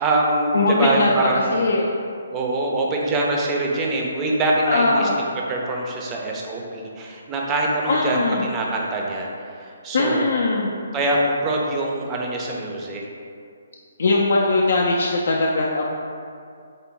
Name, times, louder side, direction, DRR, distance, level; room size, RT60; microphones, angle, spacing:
voice 1, 0.0-1.7 2.3-5.1 5.5-9.3 9.8-10.3 10.9-13.0, right 2 dB, 20° right, -1 dB, 0.4 m, -24 dB
voice 2, 0.5-1.9 4.7-5.2 7.9-8.5 9.9-10.7 14.0-15.8, left 2 dB, 65° left, -3 dB, 0.3 m, -20 dB
3.7 x 2.0 x 3.7 m, 2.4 s
hypercardioid pair, 155°, 0 cm